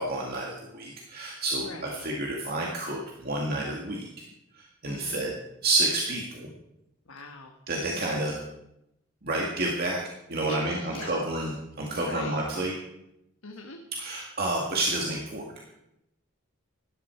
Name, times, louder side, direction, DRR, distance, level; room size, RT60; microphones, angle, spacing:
voice 1, 0.0-4.1 4.5-5.4 5.6-6.5 7.7-8.4 9.2-10.0 10.3-12.7 13.9-15.4, right 2 dB, 45° right, -1 dB, 2.0 m, -29 dB
voice 2, 1.6-2.0 4.9-5.3 7.1-7.5 10.5-11.2 11.9-12.3 13.4-13.8, left 3 dB, 90° left, 3 dB, 1.5 m, -40 dB
17.5 x 12.5 x 4.6 m, 0.84 s
head